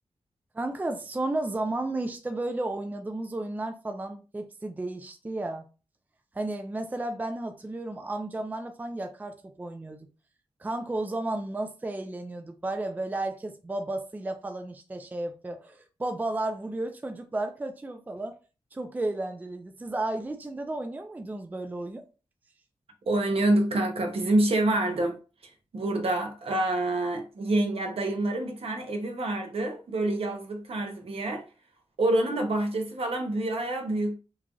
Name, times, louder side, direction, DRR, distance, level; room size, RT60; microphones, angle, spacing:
voice 1, 0.5-5.7 6.3-10.1 10.6-18.3 18.7-22.0, right 2 dB, 15° right, 0.4 m, -33 dB
voice 2, 23.1-25.1 25.4-31.4 32.0-34.2, right 1 dB, 65° right, 0.7 m, -27 dB
3.1 x 2.5 x 2.3 m
cardioid pair, 60°, 11 cm